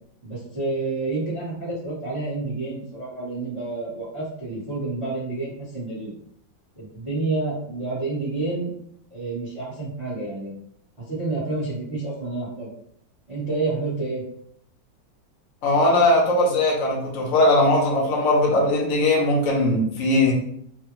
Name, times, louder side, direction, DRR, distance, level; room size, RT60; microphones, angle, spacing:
voice 1, 0.2-6.1 6.8-8.7 9.1-10.5 11.1-12.7 13.3-14.2, right 3 dB, 30° right, -8 dB, 0.6 m, -29 dB
voice 2, 15.6-20.3, left 1 dB, 60° left, -1 dB, 0.9 m, -19 dB
3.3 x 2.1 x 2.9 m, 0.70 s
omnidirectional pair, 2.1 m